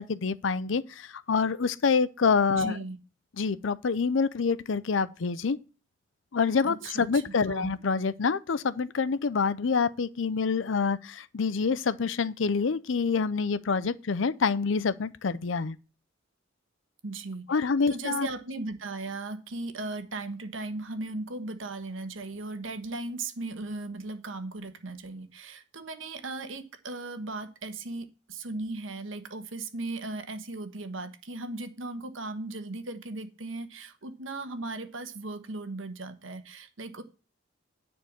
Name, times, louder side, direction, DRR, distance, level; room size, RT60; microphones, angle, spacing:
voice 1, 0.0-2.8 3.4-5.6 6.3-15.8 17.5-18.3, left 5 dB, 70° left, 0.6 m, -27 dB
voice 2, 2.5-3.0 6.6-7.7 17.0-37.0, right 2 dB, 75° right, 1.3 m, -37 dB
10.0 x 4.5 x 7.4 m
head